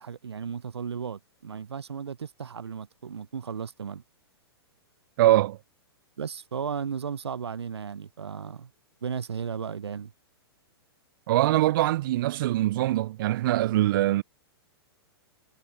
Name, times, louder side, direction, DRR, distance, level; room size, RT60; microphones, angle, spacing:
voice 1, 0.0-4.0 6.2-8.7 9.0-10.1, right 7 dB, 80° right, 0.8 m, -35 dB
voice 2, 5.2-5.6 11.3-14.2, right 15 dB, 55° right, 0.4 m, -23 dB
hypercardioid pair, 115°, 14 cm